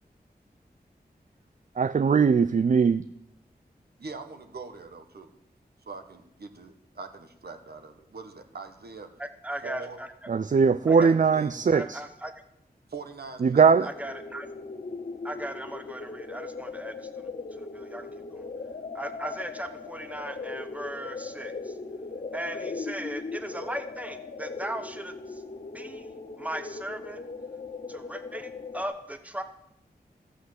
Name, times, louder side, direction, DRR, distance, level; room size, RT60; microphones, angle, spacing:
voice 1, 1.8-3.1 10.3-12.0 13.4-13.9, right 5 dB, 50° right, 0.4 m, -20 dB
voice 2, 4.0-5.3 5.9-9.1 9.6-10.0 11.0-11.6 12.9-13.9, right 4 dB, 70° right, 1.5 m, -42 dB
voice 3, 9.2-10.1 10.9-11.1 11.7-12.3 13.8-14.5 15.2-17.1 17.5-18.5 18.9-21.7 22.3-25.4 25.7-26.1 26.4-27.2 27.9-29.4, right 1 dB, 10° right, 1.3 m, -37 dB
sound 1, 13.7-28.8, left 4 dB, 50° left, 1.6 m, -39 dB
14.0 x 8.1 x 7.8 m
wide cardioid pair, 75°, 17 cm